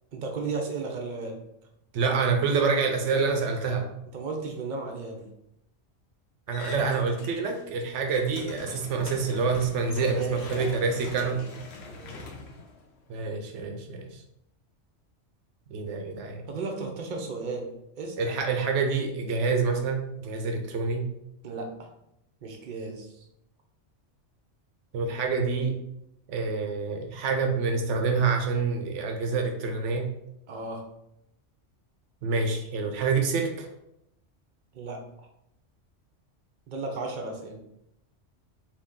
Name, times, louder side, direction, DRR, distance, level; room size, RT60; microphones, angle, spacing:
voice 1, 0.1-1.4 4.1-5.3 10.1-10.9 11.2-11.4 11.8-12.3 16.5-17.7 18.0-18.2 21.4-21.9 22.4-23.2 30.5-30.8 34.7-35.3 36.7-37.6, right 3 dB, 50° right, 2 dB, 0.6 m, -35 dB
voice 2, 1.9-3.9 6.5-11.4 13.1-14.2 15.7-16.5 18.2-21.1 24.9-25.8 26.3-30.1 32.2-33.7, right 4 dB, 80° right, 3 dB, 0.9 m, -27 dB
sound 1, 6.5-7.6 7.9-13.3, left 4 dB, 65° left, 0.8 m, -43 dB
2.8 x 2.7 x 3.6 m, 0.80 s
omnidirectional pair, 1.3 m